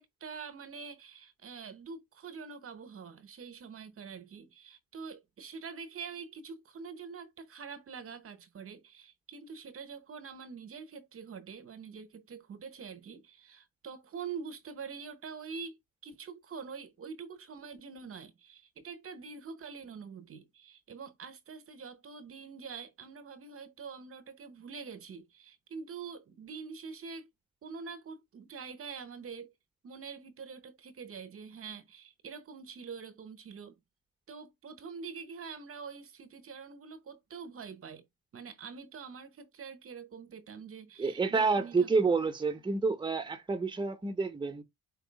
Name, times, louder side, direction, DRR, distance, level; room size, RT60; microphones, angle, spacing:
voice 1, 0.0-27.3 27.6-29.5 29.8-33.7 34.3-38.0 38.3-41.9, right 5 dB, 45° right, 0.9 m, -45 dB
voice 2, 41.0-44.6, right 4 dB, 15° right, 0.8 m, -29 dB
4.7 x 2.9 x 4.0 m
cardioid pair, 90°, 30 cm